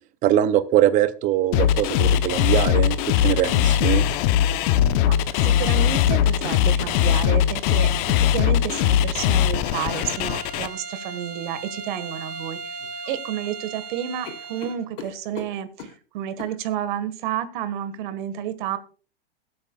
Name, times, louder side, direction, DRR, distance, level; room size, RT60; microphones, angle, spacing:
voice 1, 0.2-4.1, right 12 dB, 25° right, 14 dB, 0.6 m, -22 dB
sound 1, 1.5-10.7, left 10 dB, 45° left, 0.8 m, -20 dB
voice 2, 5.4-12.7 13.1-15.9 16.1-18.8, right 10 dB, 55° right, 12 dB, 1.6 m, -30 dB
sound 2, 5.7-7.0 8.1-8.3 9.9-10.2 12.1-12.4 12.8-13.5 13.8-13.9 14.2-16.0 16.4-16.6, left 6 dB, 70° left, 3.1 m, -39 dB
Bowed string instrument, 9.6-14.9, right 4 dB, 85° right, 2.3 m, -37 dB
21.0 x 8.6 x 2.3 m, 0.38 s
hypercardioid pair, 130°, 29 cm